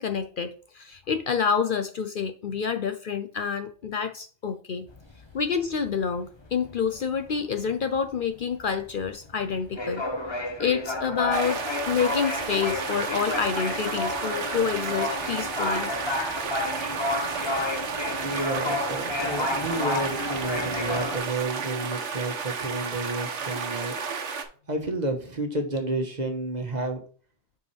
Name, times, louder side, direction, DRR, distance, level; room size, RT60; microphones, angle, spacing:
voice 1, 0.0-4.9 5.3-10.0 10.3-11.6 11.9-15.9, left 6 dB, 55° left, 0.7 m, -28 dB
sound 1, 4.9-6.1 6.5-6.7 6.9-21.2, left 2 dB, 25° left, 0.9 m, -31 dB
sound 2, 11.3-24.4, right 6 dB, 90° right, 1.3 m, -32 dB
voice 2, 18.2-24.0 24.7-27.0, right 2 dB, 40° right, 1.3 m, -30 dB
8.3 x 4.7 x 3.3 m
omnidirectional pair, 1.2 m